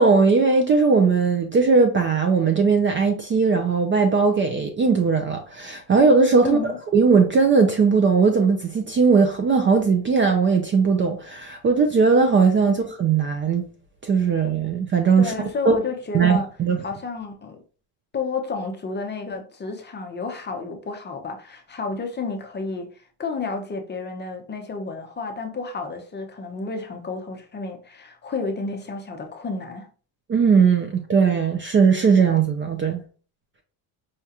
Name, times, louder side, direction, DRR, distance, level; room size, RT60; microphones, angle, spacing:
voice 1, 0.0-6.6 6.9-13.7 14.0-15.3 15.7-15.8 16.1-16.8 30.3-33.0, right 5 dB, 25° right, 0.4 m, -19 dB
voice 2, 15.2-16.5 16.8-17.6 18.1-22.9 23.2-29.9, left 4 dB, 25° left, 0.6 m, -31 dB
4.9 x 2.2 x 2.8 m
cardioid pair, 110°, 47 cm